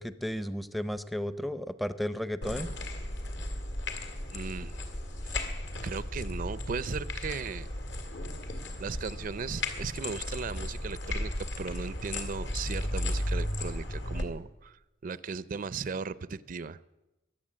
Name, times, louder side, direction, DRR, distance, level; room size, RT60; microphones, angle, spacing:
voice 1, 0.0-2.7, equal, ahead, 13 dB, 0.5 m, -33 dB
sound 1, 2.4-14.3, left 1 dB, 70° left, 2.2 m, -35 dB
voice 2, 4.3-4.8 5.2-5.5 5.8-7.7 8.8-11.3 11.6-16.8, right 5 dB, 45° right, 18 dB, 0.5 m, -37 dB
22.5 x 8.2 x 7.5 m, 0.96 s
head